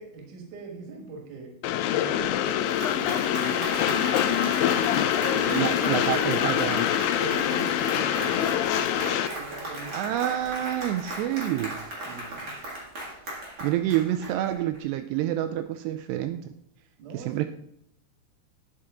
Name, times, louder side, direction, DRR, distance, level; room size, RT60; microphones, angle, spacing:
voice 1, 0.0-1.6 1.9-4.4 4.7-6.5 7.2-8.6 9.3-10.2 12.0-12.6 17.0-17.5, right 4 dB, 60° right, 2 dB, 2.7 m, -42 dB
Train, 1.6-9.3, left 11 dB, 85° left, 2.4 m, -25 dB
Applause, 2.2-14.8, right 1 dB, 35° right, 1.6 m, -36 dB
voice 2, 5.3-6.9 9.9-11.8 13.6-16.5 17.1-17.5, right 12 dB, 85° right, 8 dB, 2.7 m, -28 dB
9.8 x 5.7 x 3.6 m, 0.71 s
omnidirectional pair, 4.8 m